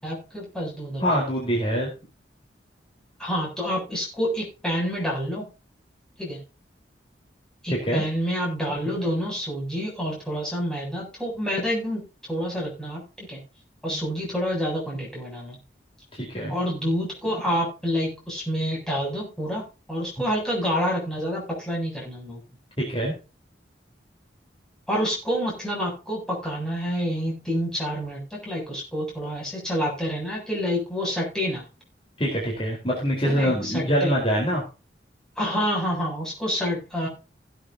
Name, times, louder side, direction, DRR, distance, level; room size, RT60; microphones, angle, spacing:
voice 1, 0.0-1.2 3.2-5.4 6.2-6.4 7.6-12.0 12.3-13.4 13.8-15.6 16.5-22.4 24.9-31.6 33.2-34.1 35.4-37.1, equal, 5° left, -3 dB, 7.7 m, -28 dB
voice 2, 1.0-1.9 7.7-8.0 13.9-14.0 16.1-16.5 22.8-23.1 32.2-34.6, equal, 30° left, -2 dB, 4.3 m, -24 dB
17.5 x 9.2 x 2.8 m, 0.31 s
head